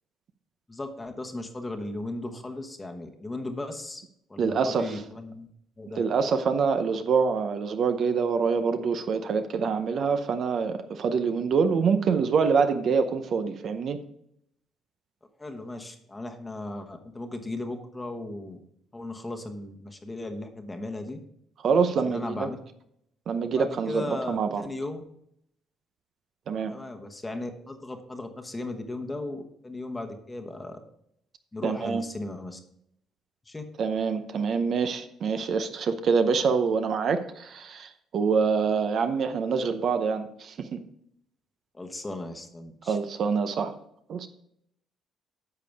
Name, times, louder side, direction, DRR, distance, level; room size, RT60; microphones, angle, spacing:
voice 1, 0.7-4.0 4.3-5.5 5.8-6.0 15.4-18.6 18.9-21.2 22.1-22.6 23.6-25.0 26.7-30.8 31.5-32.6 33.5-33.6 41.7-43.0, left 2 dB, 15° left, 4 dB, 1.1 m, -36 dB
voice 2, 4.4-4.9 6.0-14.0 21.6-22.5 23.3-24.6 26.5-26.7 31.6-32.0 33.8-40.8 42.9-43.7 44.1-44.3, right 5 dB, 50° right, 9 dB, 0.7 m, -25 dB
10.5 x 6.7 x 3.5 m, 0.74 s
cardioid pair, 120°, 0 cm